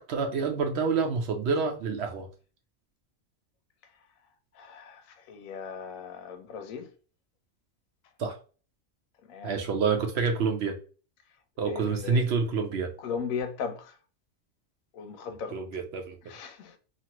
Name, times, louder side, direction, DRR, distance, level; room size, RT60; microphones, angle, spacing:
voice 1, 0.0-2.3 8.2-8.4 9.4-10.8 11.6-12.9 15.3-16.2, right 5 dB, 65° right, 0.7 m, -28 dB
voice 2, 4.6-5.0 5.3-6.9 9.3-9.5 11.7-12.2 13.0-13.9 14.9-15.6 16.3-16.7, left 6 dB, 85° left, 1.1 m, -37 dB
2.7 x 2.5 x 2.9 m
omnidirectional pair, 1.4 m